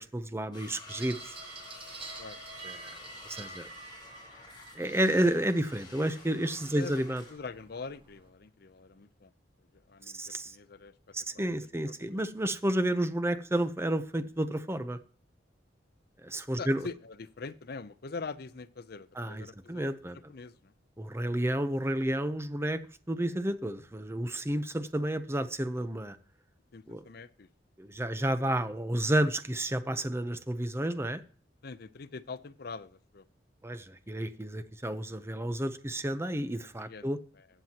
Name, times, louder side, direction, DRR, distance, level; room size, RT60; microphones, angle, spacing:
voice 1, 0.0-1.4 2.6-2.9 3.3-3.7 4.8-7.2 10.1-10.6 11.1-15.0 16.2-16.8 19.2-20.2 21.0-22.8 23.1-26.2 26.9-27.0 27.8-31.2 33.6-37.2, right 1 dB, 15° right, 0.7 m, -31 dB
sound 1, 0.5-7.4, left 3 dB, 25° left, 3.6 m, -50 dB
sound 2, 0.9-8.3, right 3 dB, 30° right, 1.7 m, -48 dB
voice 2, 6.7-7.0 7.3-9.3 9.7-10.9 11.3-11.4 11.8-12.2 16.6-20.7 26.7-27.5 31.6-33.2 36.8-37.1 37.3-37.5, left 4 dB, 60° left, 0.6 m, -43 dB
15.0 x 7.8 x 2.9 m
head